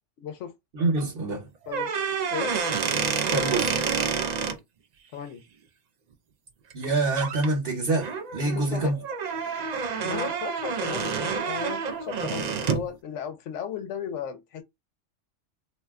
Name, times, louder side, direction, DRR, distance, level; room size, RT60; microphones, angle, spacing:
voice 1, 0.2-0.5 1.7-1.9 2.3-2.5 5.1-5.4 8.4-9.0 10.0-14.6, left 8 dB, 80° left, 0.9 m, -35 dB
voice 2, 0.7-1.5 3.3-3.7 6.7-9.0, right 2 dB, 55° right, 1.2 m, -26 dB
sound 1, 1.6-4.6 6.7-6.9 7.2-7.5 8.0-12.9, right 6 dB, 75° right, 0.3 m, -28 dB
2.5 x 2.1 x 3.5 m
omnidirectional pair, 1.2 m